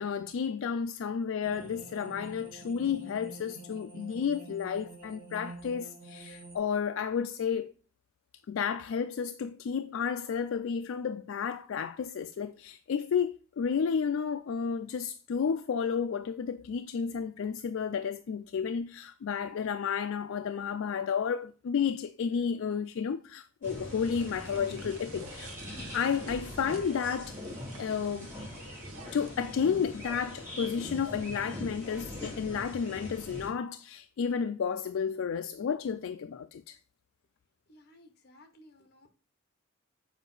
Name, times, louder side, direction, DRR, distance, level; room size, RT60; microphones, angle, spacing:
voice 1, 0.0-7.7 8.5-25.5 25.9-27.4 27.8-28.3 29.1-36.8, left 6 dB, 70° left, 0.3 m, -32 dB
sound 1, 1.4-6.6, right 2 dB, 40° right, 2.5 m, -47 dB
sound 2, 23.6-33.5, left 1 dB, 15° right, 3.6 m, -42 dB
sound 3, 24.0-29.3, right 5 dB, 90° right, 0.8 m, -52 dB
voice 2, 37.7-39.1, left 1 dB, 50° left, 1.1 m, -57 dB
7.1 x 4.6 x 3.9 m
head